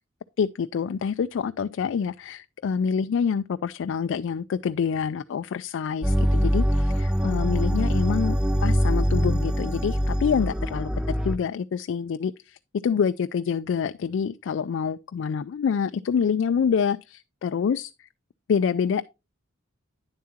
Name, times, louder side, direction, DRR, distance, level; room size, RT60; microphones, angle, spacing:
voice 1, 0.4-18.1 18.5-19.1, left 6 dB, 65° left, 0.3 m, -27 dB
sound 1, 6.0-11.4, equal, 5° right, 0.4 m, -23 dB
9.7 x 7.3 x 2.8 m
head